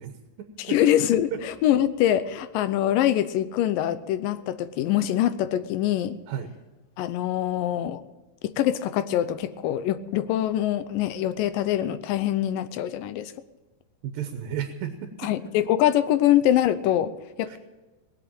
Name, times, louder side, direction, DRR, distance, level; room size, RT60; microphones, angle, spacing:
voice 1, 0.0-0.8 1.3-1.4 6.3-6.5 14.0-15.3 17.5-17.6, right 8 dB, 80° right, 6 dB, 2.7 m, -34 dB
voice 2, 0.7-6.2 7.0-8.0 8.4-13.3 15.2-17.1 17.4-17.6, left 12 dB, 80° left, 13 dB, 2.4 m, -24 dB
19.5 x 8.1 x 8.8 m, 1.2 s
omnidirectional pair, 4.0 m